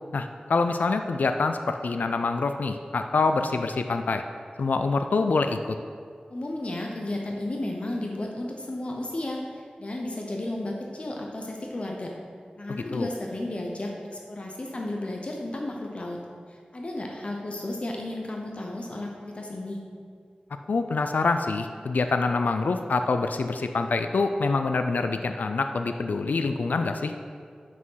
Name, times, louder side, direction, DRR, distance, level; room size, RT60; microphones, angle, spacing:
voice 1, 0.1-4.2 4.6-5.8 12.9-13.1 20.7-27.1, left 3 dB, 85° left, 7 dB, 0.4 m, -25 dB
voice 2, 6.3-12.2 12.6-16.2 16.5-19.8, left 1 dB, 45° left, 0 dB, 0.9 m, -33 dB
7.4 x 6.1 x 5.6 m, 2.1 s
wide cardioid pair, 90°, 3 cm